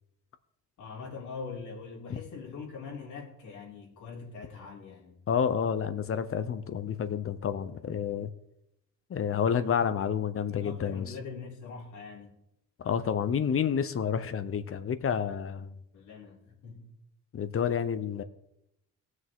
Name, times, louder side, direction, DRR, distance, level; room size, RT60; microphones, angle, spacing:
voice 1, 0.8-5.2 9.5-10.2 10.5-12.3 15.9-16.9, left 5 dB, 75° left, -2 dB, 3.6 m, -43 dB
voice 2, 5.3-8.3 9.1-11.1 12.8-15.8 17.3-18.2, left 7 dB, 45° left, 11 dB, 0.9 m, -29 dB
18.0 x 6.4 x 3.7 m, 0.83 s
cardioid pair, 90°, 30 cm